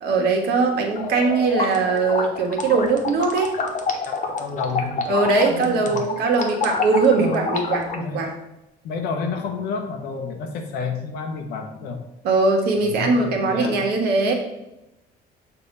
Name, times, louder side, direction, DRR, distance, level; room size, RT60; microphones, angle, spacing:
voice 1, 0.0-3.5 5.1-8.3 12.2-14.3, right 3 dB, 75° right, 2 dB, 1.4 m, -20 dB
sound 1, 1.0-8.0, left 4 dB, 45° left, 1.0 m, -28 dB
voice 2, 4.0-6.0 7.2-7.4 7.9-8.2 8.8-12.0 12.8-13.8, left 5 dB, 85° left, 3 dB, 0.8 m, -30 dB
6.8 x 2.8 x 5.3 m, 0.91 s
cardioid pair, 110°, 17 cm